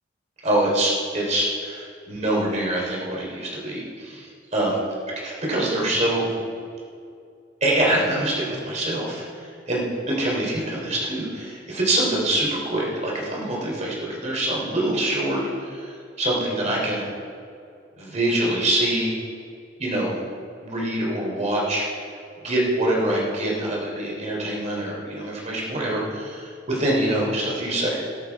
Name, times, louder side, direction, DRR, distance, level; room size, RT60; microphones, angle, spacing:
voice 1, 0.4-4.7 5.2-6.3 7.6-17.0 18.0-19.1 19.8-20.2 20.6-21.9 22.4-27.9, right 1 dB, 40° right, -3 dB, 3.2 m, -25 dB
20.0 x 7.3 x 4.6 m, 2.4 s
head